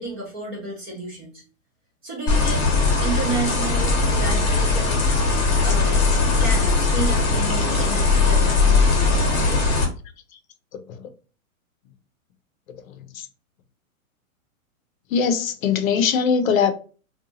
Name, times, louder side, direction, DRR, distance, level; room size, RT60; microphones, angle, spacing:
voice 1, 0.0-1.4 2.0-2.7 3.0-5.2 5.6-6.1 6.4-9.6, right 3 dB, 20° right, 0.4 m, -32 dB
sound 1, 2.3-9.9, left 3 dB, 30° left, 0.8 m, -19 dB
voice 2, 12.9-13.3 15.1-16.7, left 6 dB, 70° left, 0.6 m, -21 dB
2.7 x 2.3 x 2.6 m
hypercardioid pair, 140°, 42 cm